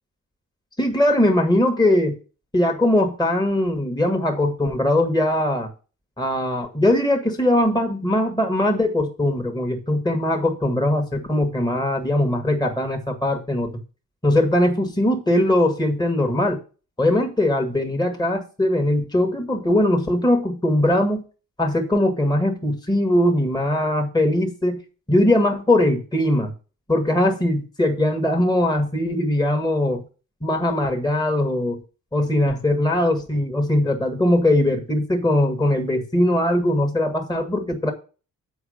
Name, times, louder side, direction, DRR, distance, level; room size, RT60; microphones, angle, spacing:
voice 1, 0.8-2.2 2.5-5.7 6.2-13.7 14.2-16.6 17.0-21.2 21.6-24.8 25.1-26.5 26.9-30.0 30.4-31.8 32.1-37.9, left 1 dB, 10° left, 3 dB, 1.7 m, -20 dB
7.2 x 4.6 x 6.4 m, 0.34 s
cardioid pair, 75°, 36 cm